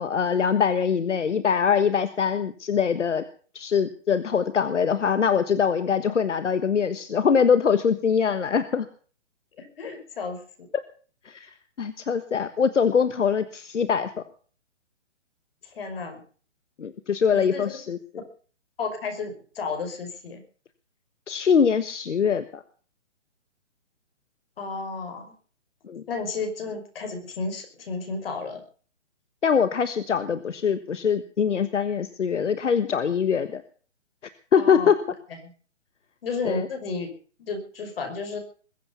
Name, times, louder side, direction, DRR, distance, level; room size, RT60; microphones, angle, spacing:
voice 1, 0.0-3.2 3.5-8.9 10.7-10.8 11.2-11.5 11.8-14.1 16.8-18.0 21.3-22.6 25.9-26.0 29.4-33.6 34.5-35.0 36.4-36.7, left 6 dB, 80° left, 12 dB, 1.4 m, -23 dB
voice 2, 9.6-10.7 15.6-16.2 17.3-17.7 18.8-20.4 24.6-25.3 26.1-28.6 34.6-34.9 36.2-37.1 37.4-38.4, left 4 dB, 50° left, 6 dB, 5.5 m, -32 dB
21.5 x 8.4 x 7.1 m, 0.43 s
hypercardioid pair, 155°, 36 cm